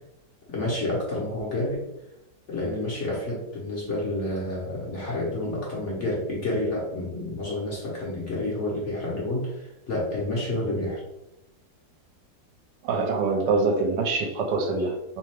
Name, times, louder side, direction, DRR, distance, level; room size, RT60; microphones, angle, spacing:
voice 1, 0.5-1.9 2.5-11.0, left 1 dB, 50° left, -4 dB, 1.0 m, -29 dB
voice 2, 12.8-15.2, right 3 dB, 75° right, 4 dB, 1.2 m, -25 dB
3.3 x 3.1 x 3.2 m, 0.91 s
omnidirectional pair, 2.0 m